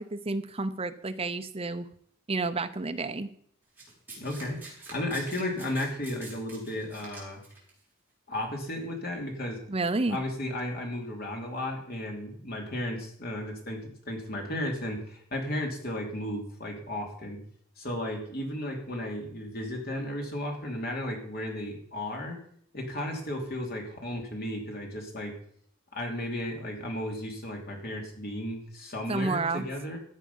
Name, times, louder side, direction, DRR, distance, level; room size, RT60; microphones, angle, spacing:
voice 1, 0.0-1.9 2.3-3.3 9.7-10.2 29.1-29.6, right 3 dB, 30° right, 8 dB, 0.7 m, -30 dB
Domestic sounds home sounds, 3.8-7.7 8.6-8.8, right 3 dB, 10° right, 4.6 m, -46 dB
voice 2, 4.2-7.4 8.3-9.6 10.1-13.8 14.1-17.4 17.8-22.4 22.7-25.3 25.9-30.0, left 1 dB, 50° left, 1 dB, 3.0 m, -34 dB
14.5 x 8.4 x 5.5 m, 0.64 s
head